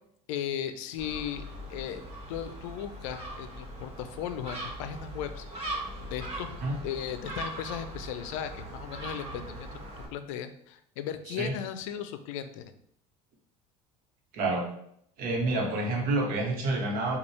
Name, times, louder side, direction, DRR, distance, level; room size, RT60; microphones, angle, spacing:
voice 1, 0.3-1.4 1.7-5.4 6.1-6.6 6.8-9.8 10.1-12.6, left 9 dB, 75° left, 10 dB, 0.4 m, -36 dB
Gull seagull, 1.0-10.1, right 1 dB, 35° right, 1.6 m, -40 dB
voice 2, 11.3-11.6 14.3-14.7 15.2-17.2, right 2 dB, 60° right, 1 dB, 1.1 m, -28 dB
5.2 x 2.4 x 3.2 m, 0.71 s
hypercardioid pair, 75°, 17 cm